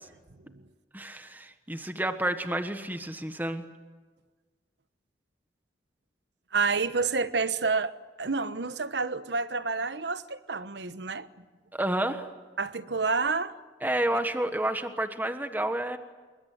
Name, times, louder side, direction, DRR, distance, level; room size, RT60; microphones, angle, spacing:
voice 1, 0.9-3.6 11.7-12.3 13.8-16.0, right 1 dB, 10° right, 1.4 m, -30 dB
voice 2, 6.5-7.9 8.2-11.3 12.6-13.5, right 4 dB, 70° right, 1.1 m, -29 dB
27.5 x 22.5 x 9.4 m
head